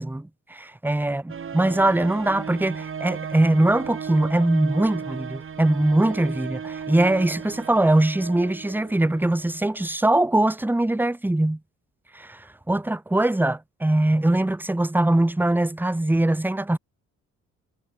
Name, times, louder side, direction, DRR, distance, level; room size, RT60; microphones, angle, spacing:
voice 1, 0.0-11.6 12.1-16.8, right 1 dB, 5° right, 1.2 m, -22 dB
sound 1, 1.3-9.7, right 7 dB, 45° right, 3.5 m, -36 dB
cardioid pair, 90°, 30 cm